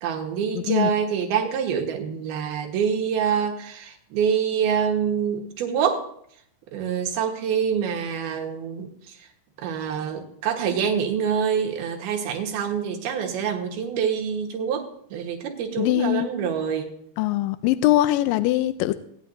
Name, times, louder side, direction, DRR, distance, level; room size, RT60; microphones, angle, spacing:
voice 1, 0.0-6.1 6.7-8.9 9.6-16.9, right 7 dB, 80° right, 2 dB, 3.3 m, -26 dB
voice 2, 0.6-0.9 15.8-16.3 17.2-19.0, left 14 dB, 80° left, 11 dB, 2.1 m, -22 dB
18.5 x 10.5 x 2.7 m, 0.69 s
omnidirectional pair, 4.4 m